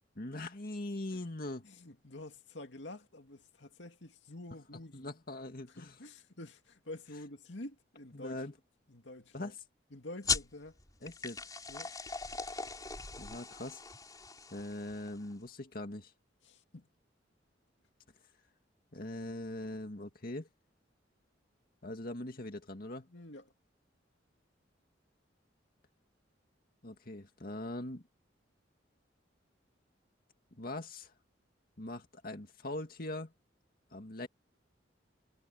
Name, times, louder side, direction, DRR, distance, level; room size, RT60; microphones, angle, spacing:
voice 1, 0.2-1.6 4.9-6.0 8.1-8.5 9.3-9.6 11.0-11.4 11.8-12.0 13.2-13.8 14.5-16.1 18.9-20.5 21.8-23.1 26.8-28.0 30.6-31.1 31.8-33.3 33.9-34.3, left 1 dB, 50° left, 2.1 m, -41 dB
voice 2, 1.6-5.1 5.7-8.4 8.9-9.5 9.9-10.8 11.7-11.9 16.4-16.9 23.1-23.5, left 1 dB, 70° left, 2.4 m, -48 dB
sound 1, 10.2-15.3, left 4 dB, 20° left, 4.7 m, -39 dB
head